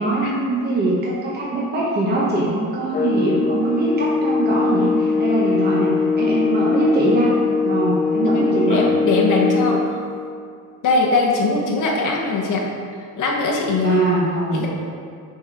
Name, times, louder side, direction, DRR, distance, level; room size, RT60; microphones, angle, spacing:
voice 1, 0.0-7.3 7.6-8.9 13.8-14.7, right 2 dB, 25° right, -5 dB, 1.2 m, -22 dB
sound 1, 2.9-10.0, left 4 dB, 25° left, 0.5 m, -21 dB
voice 2, 8.2-10.0 10.8-12.7 13.0-14.0 14.5-14.7, left 3 dB, 55° left, -2 dB, 1.2 m, -21 dB
7.8 x 4.3 x 4.8 m, 2.3 s
cardioid pair, 115°, 38 cm